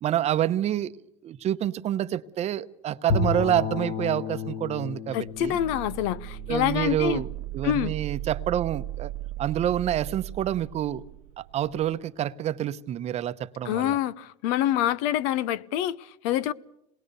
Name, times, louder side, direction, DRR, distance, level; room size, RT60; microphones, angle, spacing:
voice 1, 0.0-0.9 1.2-5.6 6.5-7.3 7.5-9.1 9.4-11.0 11.4-13.9, right 11 dB, 40° right, 0.9 m, -27 dB
Bowed string instrument, 3.1-7.3, left 4 dB, 40° left, 1.7 m, -32 dB
voice 2, 5.1-7.2 7.6-7.9 13.6-16.5, left 12 dB, 70° left, 0.8 m, -26 dB
sound 1, 5.2-11.9, right 16 dB, 75° right, 0.8 m, -37 dB
27.0 x 20.5 x 6.8 m
supercardioid pair, 115°, 17 cm